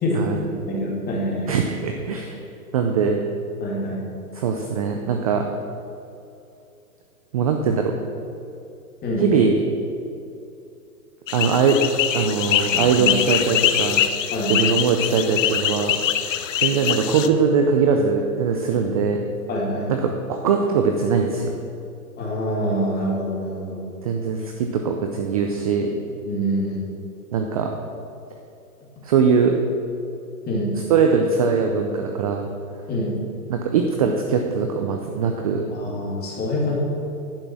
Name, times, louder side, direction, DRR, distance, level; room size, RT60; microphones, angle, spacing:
voice 1, 0.0-1.5 3.6-4.0 9.0-9.3 13.0-13.1 14.3-14.5 19.5-19.9 22.2-23.8 26.2-26.8 30.5-30.7 32.9-33.1 35.7-36.8, equal, 20° left, -3 dB, 2.4 m, -25 dB
voice 2, 1.5-2.4 2.7-3.2 4.3-5.5 7.3-8.0 9.2-9.6 11.3-11.8 12.1-14.0 14.5-16.0 16.6-19.2 19.9-21.5 24.0-25.9 27.3-27.7 29.0-29.6 30.9-32.5 33.5-35.7, right 5 dB, 25° right, 3 dB, 0.4 m, -21 dB
sound 1, 11.3-17.3, left 10 dB, 55° left, 0.7 m, -23 dB
10.5 x 6.1 x 6.0 m, 2.6 s
hypercardioid pair, 130°, 45 cm